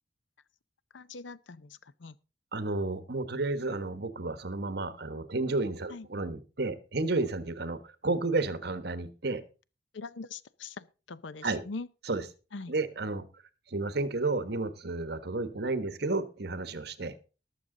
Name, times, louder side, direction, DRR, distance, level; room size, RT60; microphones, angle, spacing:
voice 1, 0.9-2.2 5.9-6.1 9.9-11.9 12.5-12.7, left 4 dB, 85° left, 0.6 m, -42 dB
voice 2, 2.5-9.4 11.4-11.6 12.0-12.2 12.7-13.3 13.7-17.1, right 3 dB, 60° right, 1.2 m, -32 dB
19.5 x 6.8 x 3.8 m
head